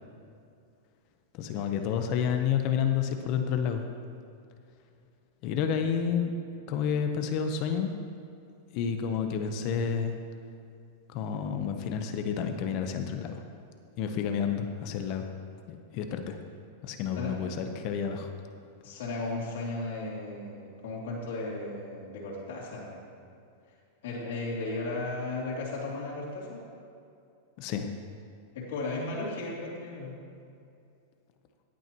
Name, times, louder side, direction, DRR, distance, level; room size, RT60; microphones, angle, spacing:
voice 1, 1.3-3.8 5.4-6.3 6.7-7.9 8.7-10.2 11.1-13.4 14.0-15.3 15.7-16.4 16.8-18.3 27.6-27.9, left 7 dB, 50° left, 6 dB, 0.9 m, -30 dB
voice 2, 18.8-23.0 24.0-26.6 28.5-30.1, left 2 dB, 75° left, -5 dB, 2.9 m, -35 dB
17.0 x 9.0 x 3.0 m, 2.5 s
hypercardioid pair, 130°, 0 cm